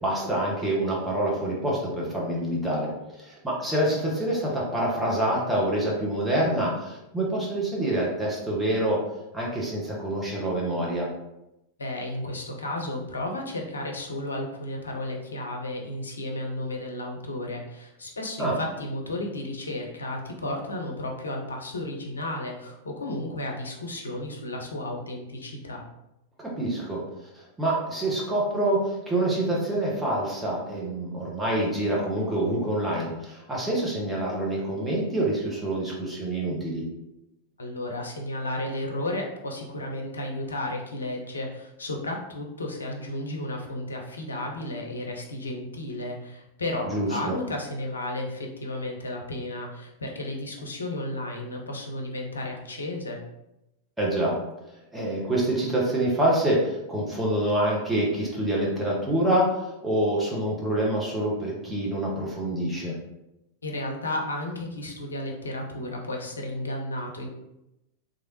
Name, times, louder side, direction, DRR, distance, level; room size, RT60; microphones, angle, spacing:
voice 1, 0.0-2.9 3.2-9.0 9.3-11.1 18.4-18.6 26.4-27.0 27.3-36.8 46.8-47.4 54.0-54.4 54.9-62.9, right 1 dB, 10° right, -4 dB, 0.9 m, -26 dB
voice 2, 11.8-25.8 37.6-53.2 63.6-67.3, left 1 dB, 80° left, 1 dB, 0.5 m, -33 dB
3.1 x 2.4 x 2.9 m, 0.90 s
figure-of-eight pair, 90°, 0 cm